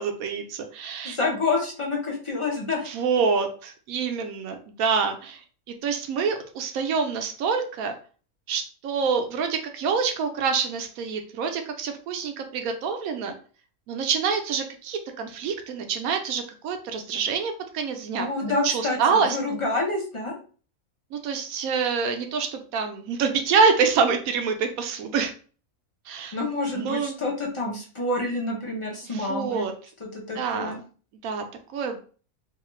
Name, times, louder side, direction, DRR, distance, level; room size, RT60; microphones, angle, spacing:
voice 1, 0.0-1.2 2.9-5.4 5.8-7.9 8.5-13.3 13.9-18.3 18.6-19.4 21.1-25.3 26.1-26.4 26.7-27.1 29.1-29.7 30.3-30.8 31.2-31.4 31.7-32.0, right 5 dB, 80° right, 6 dB, 1.0 m, -26 dB
voice 2, 1.0-2.9 18.2-20.3 26.3-29.7 30.0-30.8, left 2 dB, 35° left, -2 dB, 0.5 m, -28 dB
2.8 x 2.3 x 3.0 m, 0.40 s
omnidirectional pair, 1.5 m